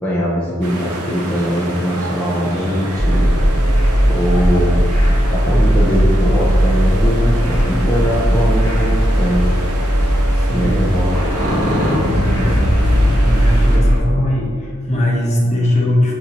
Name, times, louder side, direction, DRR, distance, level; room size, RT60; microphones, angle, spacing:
voice 1, 0.0-3.3 4.0-4.8 5.3-9.5 10.5-11.2 12.5-12.6, equal, 5° left, -8 dB, 0.4 m, -20 dB
sound 1, 0.6-13.8, right 1 dB, 90° right, 0.7 m, -30 dB
sound 2, 2.9-14.0, equal, 30° right, 1.0 m, -16 dB
voice 2, 10.3-10.8 12.1-16.1, left 1 dB, 30° left, -4 dB, 0.8 m, -20 dB
6.8 x 2.7 x 2.9 m, 2.2 s
head